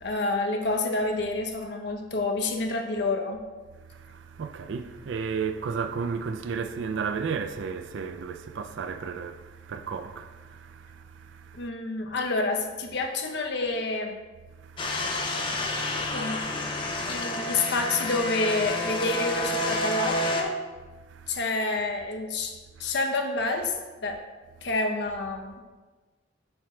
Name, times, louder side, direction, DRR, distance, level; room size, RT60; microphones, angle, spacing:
voice 1, 0.0-3.4 11.5-14.2 15.1-15.3 15.6-15.7 16.1-16.4 17.1-20.6 21.3-22.5 22.8-23.7 24.0-24.2 24.6-25.6, left 2 dB, 55° left, 0.7 m, -28 dB
voice 2, 3.9-11.7 14.6-15.3 15.6-15.7 16.0-16.1 16.8-17.2 21.1-21.4 22.8-22.9, right 5 dB, 65° right, 0.3 m, -34 dB
sound 1, 14.8-20.4, left 1 dB, 25° left, 0.5 m, -29 dB
7.2 x 4.8 x 3.2 m
head